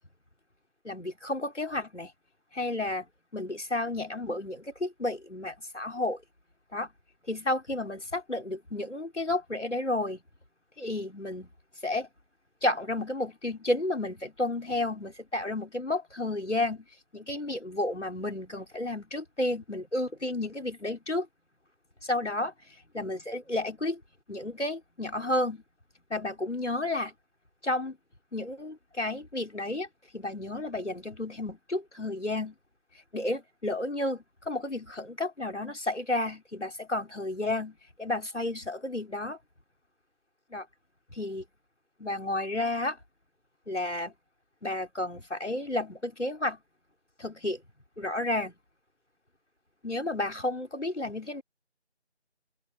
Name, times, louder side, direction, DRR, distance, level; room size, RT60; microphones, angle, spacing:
voice 1, 0.8-2.1 2.5-3.1 3.3-6.2 6.7-6.9 7.3-10.2 10.8-11.5 11.8-12.1 12.6-16.9 17.1-21.3 22.0-22.5 22.9-24.0 24.3-25.6 26.1-27.1 27.6-28.0 28.3-29.9 30.1-32.6 33.1-39.4 40.5-40.7 41.1-41.4 42.0-43.0 43.7-44.1 44.6-46.6 47.2-47.6 48.0-48.5 49.8-51.4, left 2 dB, 90° left, 5.3 m, -32 dB
open air
figure-of-eight pair, 170°, 35 cm